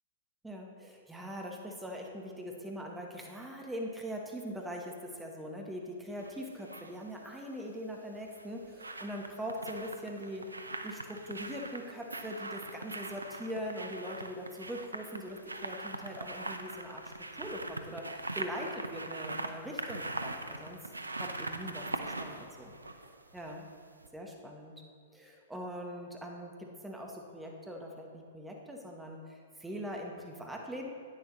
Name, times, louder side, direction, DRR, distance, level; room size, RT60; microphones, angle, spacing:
voice 1, 0.4-20.8 21.2-22.7 23.3-23.7 24.1-24.7 25.1-30.9, equal, 5° right, 0 dB, 1.1 m, -42 dB
sound 1, 6.2-6.9 8.2-23.7 24.0-24.1, right 2 dB, 85° right, 0.6 m, -41 dB
10.5 x 9.3 x 3.1 m, 2.1 s
figure-of-eight pair, 110°, 0 cm